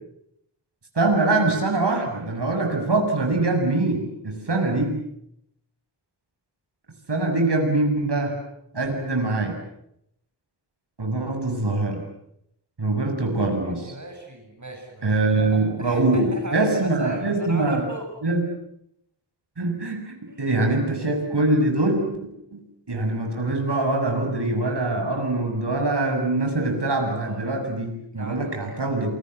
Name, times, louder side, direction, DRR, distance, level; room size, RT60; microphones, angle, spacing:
voice 1, 0.9-5.0 7.1-8.4 8.7-9.6 11.0-12.0 12.8-13.8 15.0-17.8 18.2-18.4 19.6-22.0 22.5-22.6 22.9-29.2, right 2 dB, 60° right, 3 dB, 7.3 m, -23 dB
voice 2, 13.6-18.1 20.3-20.5 27.2-27.4 28.1-28.9, right 2 dB, 40° right, 4 dB, 6.9 m, -36 dB
28.5 x 24.0 x 8.1 m, 0.75 s
wide cardioid pair, 70°, 45 cm